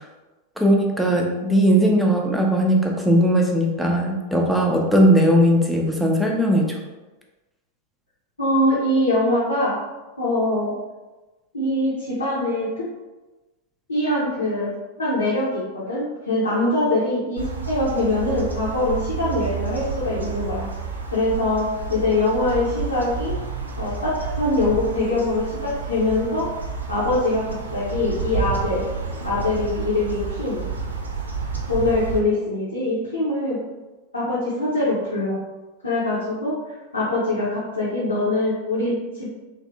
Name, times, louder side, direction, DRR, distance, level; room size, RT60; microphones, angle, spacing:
voice 1, 0.6-6.8, equal, ahead, 0 dB, 0.5 m, -18 dB
voice 2, 8.4-9.7 10.2-10.7 11.5-12.8 13.9-14.7 15.0-20.7 21.1-23.3 23.8-26.5 26.9-27.4 27.7-28.8 29.2-30.6 31.7-33.6 34.1-35.4 35.8-39.3, left 2 dB, 80° left, -9 dB, 0.8 m, -23 dB
sound 1, 17.4-32.2, right 5 dB, 75° right, 0.4 m, -30 dB
3.2 x 2.5 x 2.6 m, 1.2 s
figure-of-eight pair, 90°, 0 cm